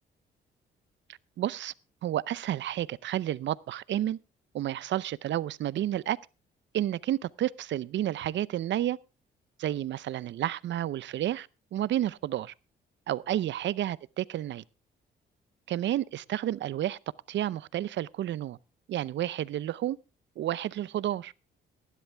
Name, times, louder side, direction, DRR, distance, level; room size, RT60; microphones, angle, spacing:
voice 1, 1.4-1.7 2.0-4.2 4.5-6.2 6.7-9.0 9.6-12.5 13.1-14.6 15.7-17.0 17.3-18.6 18.9-20.0 20.4-21.3, right 12 dB, 65° right, 0.6 m, -31 dB
18.0 x 11.0 x 3.4 m
cardioid pair, 90°, 20 cm